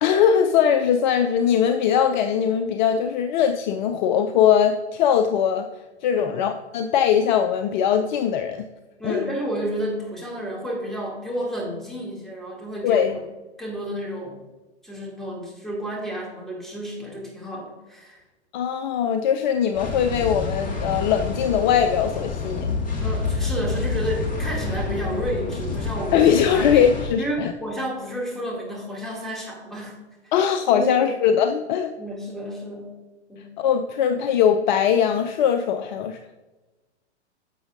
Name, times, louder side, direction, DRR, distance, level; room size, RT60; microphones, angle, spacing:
voice 1, 0.0-5.7 6.0-8.6 9.0-9.3 12.8-13.1 18.5-22.8 26.1-27.5 30.3-31.9 33.6-36.2, left 8 dB, 45° left, 7 dB, 0.5 m, -21 dB
voice 2, 9.0-13.1 13.6-14.4 14.8-18.2 23.0-26.7 27.2-30.0 30.2-30.3 30.7-31.1 32.0-32.9 33.3-33.5, equal, ahead, -3 dB, 2.3 m, -31 dB
sound 1, 19.7-27.1, left 3 dB, 25° left, 1.9 m, -28 dB
10.5 x 7.0 x 2.5 m, 1.2 s
hypercardioid pair, 115°, 34 cm